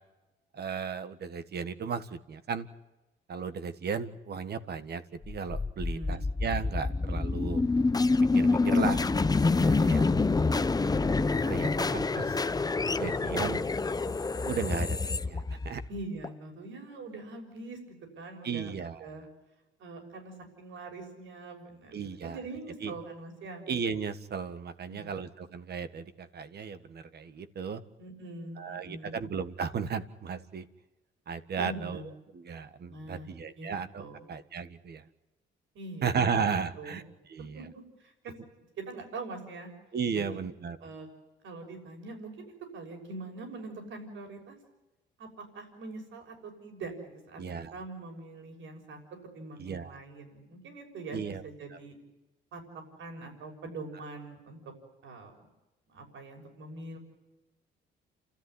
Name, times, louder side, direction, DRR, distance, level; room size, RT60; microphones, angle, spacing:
voice 1, 0.5-2.7 3.3-7.6 8.2-9.1 9.7-10.1 10.6-10.7 11.5-12.4 13.0-13.6 14.4-15.8 18.4-19.1 21.9-22.4 22.8-22.9 23.7-27.8 28.6-30.6 31.3-35.0 36.0-37.0 37.3-37.6 39.9-40.8 47.4-47.7 49.6-50.0 51.1-51.4 51.7-51.8, right 6 dB, 55° right, 12 dB, 1.7 m, -35 dB
sound 1, 5.2-16.3, left 3 dB, 20° left, 0.8 m, -27 dB
voice 2, 5.8-6.3 9.5-10.3 15.9-18.7 19.0-19.2 19.8-23.7 24.9-25.2 28.0-29.2 31.5-32.1 32.9-33.3 33.6-33.7 34.0-34.3 35.7-36.4 36.8-37.0 37.5-37.6 38.0-39.7 40.1-40.4 40.8-41.1 41.4-42.3 42.7-44.5 45.2-47.4 47.7-49.0 49.3-51.9 52.5-52.6 53.0-54.6 55.0-55.3 55.9-57.0, right 3 dB, 75° right, 3 dB, 6.5 m, -43 dB
29.0 x 13.5 x 9.8 m, 1.0 s
cardioid pair, 90°, 20 cm